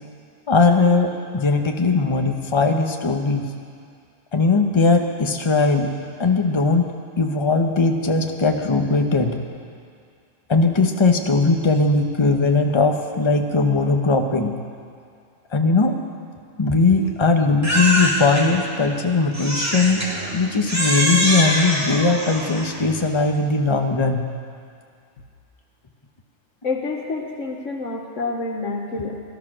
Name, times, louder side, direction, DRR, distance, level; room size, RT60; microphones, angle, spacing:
voice 1, 0.5-3.5 4.3-5.9 6.2-6.9 7.2-9.3 10.5-14.5 15.5-16.0 16.6-20.0 20.3-24.2, left 3 dB, 25° left, 4 dB, 1.0 m, -19 dB
Crying sobbing, 17.6-18.4 19.3-20.1 20.7-22.8, equal, 10° right, 2.2 m, -23 dB
sound 1, 19.3-21.1 21.8-23.2, left 1 dB, 70° right, 2.6 m, -42 dB
voice 2, 26.6-29.2, left 3 dB, 75° left, 2 dB, 1.5 m, -28 dB
18.5 x 12.5 x 6.2 m, 2.3 s
omnidirectional pair, 1.3 m